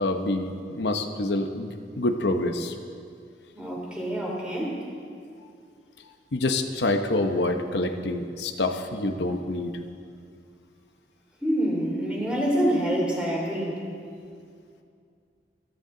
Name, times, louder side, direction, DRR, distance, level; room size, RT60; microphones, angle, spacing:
voice 1, 0.0-2.7 6.3-9.7, left 2 dB, 80° left, 5 dB, 0.9 m, -27 dB
voice 2, 3.5-4.8 11.4-13.8, equal, 5° right, -4 dB, 3.0 m, -26 dB
26.5 x 10.5 x 3.9 m, 2.3 s
head